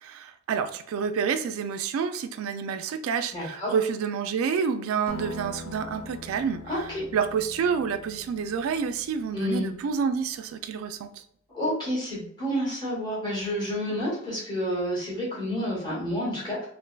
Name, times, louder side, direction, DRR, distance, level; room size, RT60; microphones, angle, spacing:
voice 1, 0.0-11.1, right 6 dB, 90° right, 9 dB, 0.3 m, -28 dB
voice 2, 3.3-3.7 6.7-7.0 9.3-9.7 11.5-16.7, equal, 20° left, -6 dB, 1.4 m, -29 dB
Acoustic guitar, 5.1-9.9, left 1 dB, 90° left, 0.5 m, -43 dB
3.2 x 2.5 x 2.2 m, 0.65 s
head